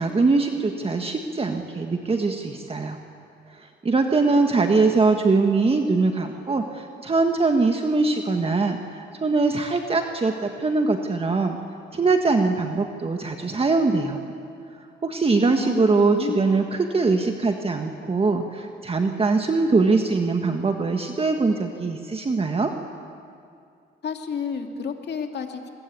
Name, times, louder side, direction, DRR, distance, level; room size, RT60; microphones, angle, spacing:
voice 1, 0.0-3.0 3.8-11.6 11.9-14.2 15.0-22.7, right 3 dB, 30° right, 4 dB, 1.7 m, -22 dB
voice 2, 15.4-16.4 24.0-25.7, left 6 dB, 55° left, 4 dB, 2.8 m, -31 dB
26.0 x 21.5 x 8.6 m, 2.4 s
cardioid pair, 90°, 20 cm